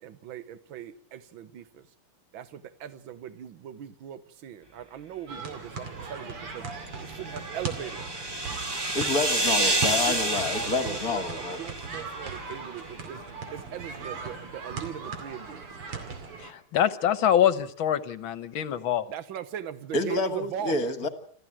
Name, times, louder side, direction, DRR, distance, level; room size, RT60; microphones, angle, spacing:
voice 1, 0.0-1.9 2.3-6.7 7.0-8.1 10.1-13.2 13.5-15.6 19.1-20.8, right 9 dB, 65° right, 1.8 m, -39 dB
sound 1, 5.3-16.5, right 4 dB, 85° right, 3.4 m, -38 dB
sound 2, 6.8-12.4, right 2 dB, 35° right, 0.4 m, -29 dB
voice 2, 8.9-11.6 19.9-21.1, left 3 dB, 45° left, 1.9 m, -28 dB
voice 3, 16.4-19.1, left 10 dB, 65° left, 1.8 m, -25 dB
27.0 x 14.0 x 7.5 m
omnidirectional pair, 2.4 m